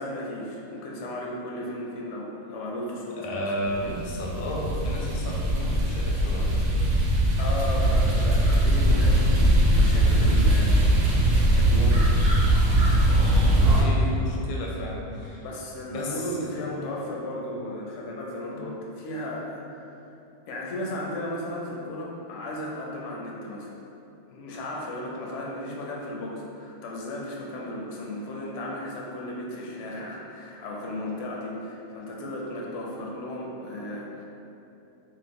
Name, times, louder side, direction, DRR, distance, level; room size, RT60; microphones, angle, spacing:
voice 1, 0.0-3.5 7.4-12.1 15.4-19.9 20.5-23.7 24.3-34.3, left 1 dB, 85° left, -3 dB, 0.9 m, -35 dB
voice 2, 3.2-6.7 13.4-15.4 15.9-17.0 18.5-18.6, equal, 60° left, -3 dB, 0.6 m, -33 dB
sound 1, 3.7-13.8, right 1 dB, 75° right, 0.9 m, -21 dB
3.0 x 2.1 x 3.5 m, 2.8 s
omnidirectional pair, 1.2 m